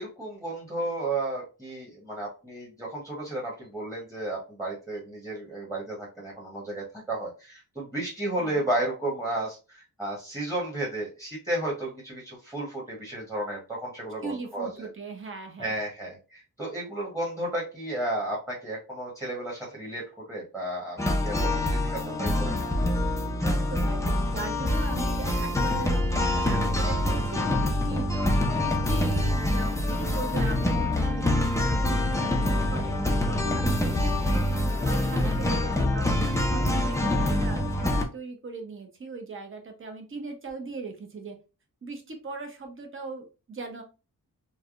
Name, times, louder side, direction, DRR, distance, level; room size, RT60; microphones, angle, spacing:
voice 1, 0.0-14.9 15.6-21.0 21.2-22.5, right 1 dB, 10° right, -4 dB, 1.0 m, -33 dB
voice 2, 14.2-15.8 23.4-28.1 28.5-32.9 33.3-34.6 34.8-36.1 36.4-41.4 41.8-43.8, right 3 dB, 35° right, 4 dB, 0.7 m, -39 dB
sound 1, 21.0-38.0, left 1 dB, 10° left, 0.4 m, -25 dB
3.3 x 2.1 x 2.4 m, 0.31 s
wide cardioid pair, 120°, 35 cm